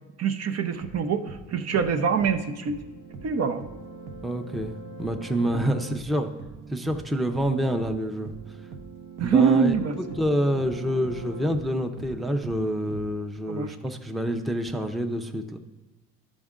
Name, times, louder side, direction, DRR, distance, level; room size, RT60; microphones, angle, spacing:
voice 1, 0.2-2.8 3.2-3.6 9.2-10.2 13.5-13.7, right 6 dB, 55° right, 7 dB, 0.7 m, -24 dB
sound 1, 0.7-13.1, right 3 dB, 80° right, 0.9 m, -42 dB
voice 2, 4.2-6.3 6.7-8.3 9.2-15.6, equal, ahead, 5 dB, 0.5 m, -27 dB
11.5 x 5.2 x 3.7 m, 1.2 s
cardioid pair, 90°, 30 cm